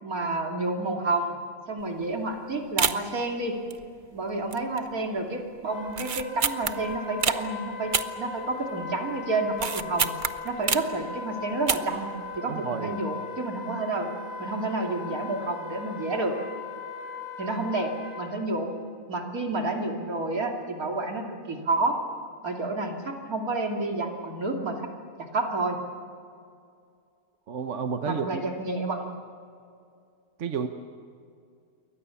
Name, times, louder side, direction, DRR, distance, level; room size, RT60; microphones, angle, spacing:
voice 1, 0.0-1.3 1.7-3.6 4.1-10.1 10.4-12.1 12.4-14.1 14.4-16.3 17.4-18.7 19.1-22.0 22.4-24.8 25.2-25.8 28.1-29.1, right 2 dB, 80° right, 2 dB, 3.1 m, -29 dB
sound 1, 1.8-2.0 2.3-2.4 2.8-3.2 3.7-4.2 4.5-4.9 5.2-5.3 5.9-7.4 7.9-8.8 9.1-11.0 11.5-12.1 12.3-12.4, right 6 dB, 40° right, 0.8 m, -28 dB
Wind instrument woodwind instrument, 5.6-18.3, left 4 dB, 10° left, 7.4 m, -39 dB
voice 2, 12.5-13.0 27.5-28.4 30.4-30.7, right 6 dB, 60° right, 7 dB, 1.3 m, -31 dB
28.5 x 23.0 x 7.1 m, 2.4 s
omnidirectional pair, 1.5 m